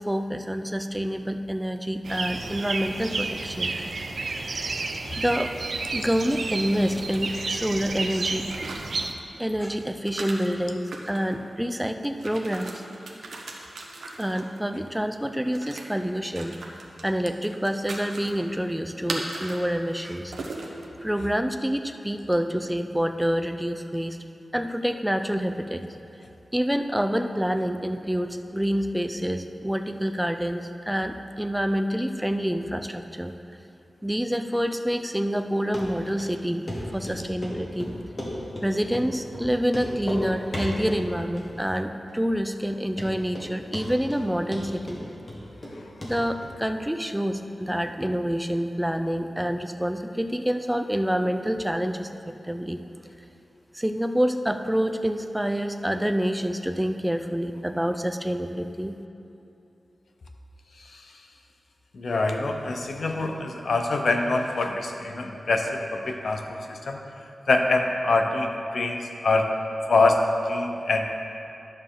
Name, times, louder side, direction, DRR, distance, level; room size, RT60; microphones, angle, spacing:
voice 1, 0.1-3.7 4.4-5.5 5.9-8.5 9.4-12.8 14.2-16.6 17.0-20.3 21.0-24.2 24.5-25.8 26.5-33.3 34.0-36.7 36.9-37.9 38.6-45.0 46.0-52.1 52.5-52.8 53.7-59.0, equal, 5° right, 7 dB, 0.4 m, -27 dB
sound 1, 2.0-9.1, right 3 dB, 60° right, 0.5 m, -31 dB
sound 2, 6.2-7.7 8.3-9.0 9.5-9.6 10.0-11.3 12.0-14.6 15.5-15.8 16.3-17.0 17.4-18.3 19.1-19.6 19.9-20.0 20.3-20.9, right 3 dB, 85° right, 0.9 m, -38 dB
Run, 35.7-35.8 36.2-36.3 36.7-36.8 37.1-37.5 37.8-38.7 38.9-39.1 39.3-39.4 39.7-40.2 40.5-41.0 41.4-41.8 42.1-42.2 42.6-42.7 43.0-43.5 43.7-44.2 44.5-45.7 46.0-46.1 46.4-46.5, left 1 dB, 35° left, 1.7 m, -34 dB
voice 2, 60.7-61.3 61.9-67.0 67.5-69.5 69.9-71.1, left 3 dB, 70° left, 4 dB, 0.7 m, -25 dB
11.0 x 6.6 x 3.8 m, 2.8 s
wide cardioid pair, 120°, 0 cm